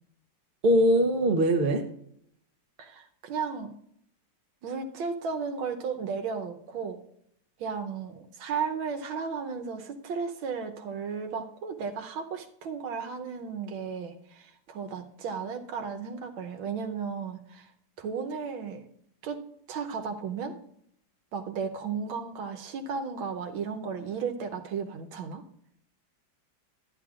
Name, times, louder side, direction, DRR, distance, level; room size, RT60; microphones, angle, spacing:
voice 1, 0.6-1.9, equal, 45° right, 4 dB, 0.7 m, -22 dB
voice 2, 2.8-3.7 4.6-7.0 7.6-17.7 18.0-18.9 19.2-19.4 19.7-20.6 21.3-25.4, right 5 dB, 85° right, 5 dB, 1.6 m, -34 dB
12.5 x 10.0 x 2.4 m, 0.70 s
omnidirectional pair, 2.1 m